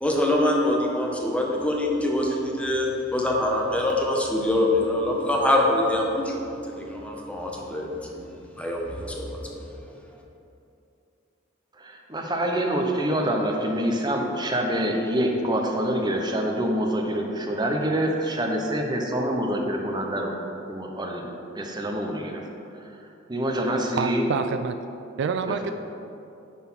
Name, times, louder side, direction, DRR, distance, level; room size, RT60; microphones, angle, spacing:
voice 1, 0.0-9.7, left 1 dB, 5° left, -1 dB, 1.0 m, -25 dB
voice 2, 11.8-20.3 20.7-22.4 22.8-22.9 23.3-24.2, right 1 dB, 20° right, 2 dB, 0.9 m, -26 dB
voice 3, 24.0-24.8 25.2-25.7, right 5 dB, 65° right, 9 dB, 0.3 m, -27 dB
10.0 x 4.1 x 5.6 m, 2.7 s
head